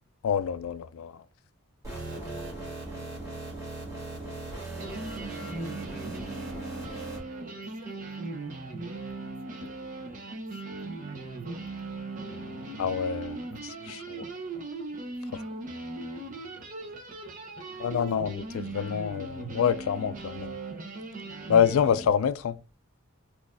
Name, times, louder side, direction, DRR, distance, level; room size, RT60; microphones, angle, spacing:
voice 1, 0.2-1.1 12.8-14.2 17.8-20.5 21.5-22.6, left 8 dB, 70° left, 0.3 m, -27 dB
sound 1, 1.8-7.2, right 2 dB, 15° right, 1.5 m, -38 dB
voice 2, 2.1-4.9 5.3-11.9 12.2-12.6 15.1-15.5 16.7-16.9 17.5-18.7, right 2 dB, 90° right, 0.7 m, -57 dB
sound 2, 4.8-22.1, right 2 dB, 35° right, 0.6 m, -38 dB
3.9 x 3.0 x 2.5 m
head